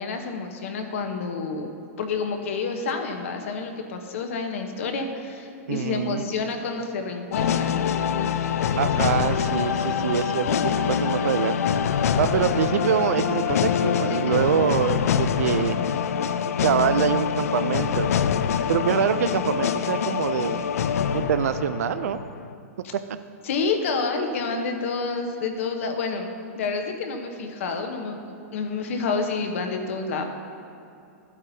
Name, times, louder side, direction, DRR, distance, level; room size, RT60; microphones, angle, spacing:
voice 1, 0.0-1.7 2.0-7.9 14.1-14.2 22.8-22.9 23.4-26.3 26.6-30.2, left 4 dB, 60° left, 4 dB, 0.9 m, -29 dB
voice 2, 5.7-6.2 8.7-11.6 12.2-15.8 16.6-18.1 18.7-20.6 21.1-22.2, right 9 dB, 75° right, 12 dB, 0.4 m, -25 dB
sound 1, 7.3-22.5, left 8 dB, 75° left, 0.4 m, -25 dB
12.5 x 8.3 x 2.7 m, 2.7 s
hypercardioid pair, 160°, 8 cm